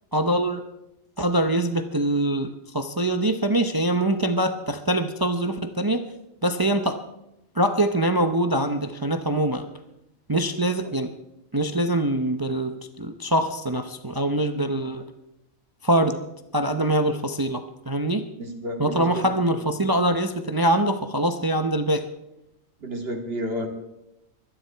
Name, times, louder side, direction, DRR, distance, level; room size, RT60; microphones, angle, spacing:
voice 1, 0.1-0.6 1.2-6.0 6.4-7.0 7.5-9.7 10.3-11.1 11.5-15.1 15.8-16.2 16.5-18.3 18.8-22.1, right 1 dB, 20° right, 8 dB, 0.7 m, -24 dB
voice 2, 18.4-19.2 22.8-23.7, equal, 45° right, 2 dB, 2.6 m, -31 dB
24.0 x 10.5 x 4.6 m, 0.88 s
omnidirectional pair, 1.4 m